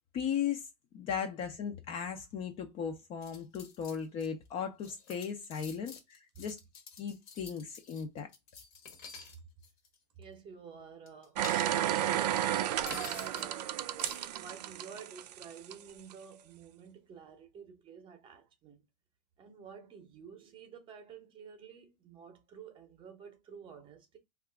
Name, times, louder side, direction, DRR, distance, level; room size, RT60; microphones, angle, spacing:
voice 1, 0.1-0.7 0.9-6.6 7.0-8.3, left 7 dB, 30° left, 0.5 m, -37 dB
sound 1, 3.2-4.3 4.6-9.4 9.6-9.9 11.1-12.1 12.9-13.5 14.0-14.4, left 5 dB, 60° left, 1.0 m, -48 dB
voice 2, 10.2-12.8 13.1-13.7 14.3-18.8 19.4-24.2, right 6 dB, 25° right, 0.7 m, -51 dB
sound 2, 11.4-15.7 16.1-16.2, right 12 dB, 80° right, 0.4 m, -32 dB
2.8 x 2.4 x 3.3 m
supercardioid pair, 135°, 21 cm